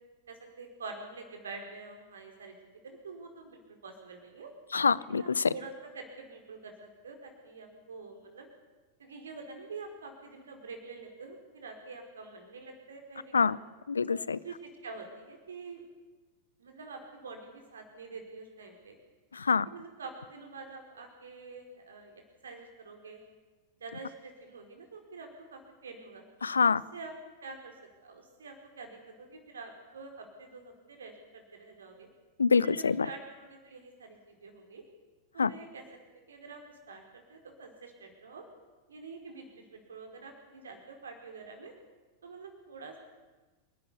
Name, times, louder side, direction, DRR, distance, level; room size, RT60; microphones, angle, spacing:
voice 1, 0.3-2.6 2.8-4.5 5.1-8.5 9.0-13.5 14.1-15.8 16.6-19.0 19.7-23.2 23.8-26.2 26.9-27.1 27.4-27.8 28.0-32.1 32.6-34.9 35.3-35.8 36.1-38.5 38.9-41.7 42.2-43.0, right 4 dB, 70° right, 4 dB, 4.9 m, -46 dB
voice 2, 4.7-5.5 13.3-13.6 13.9-14.4 19.3-19.7 26.4-26.8 32.4-33.1 35.4-35.5, left 5 dB, 75° left, 20 dB, 0.6 m, -25 dB
27.5 x 12.5 x 10.0 m, 1.2 s
figure-of-eight pair, 90°, 0 cm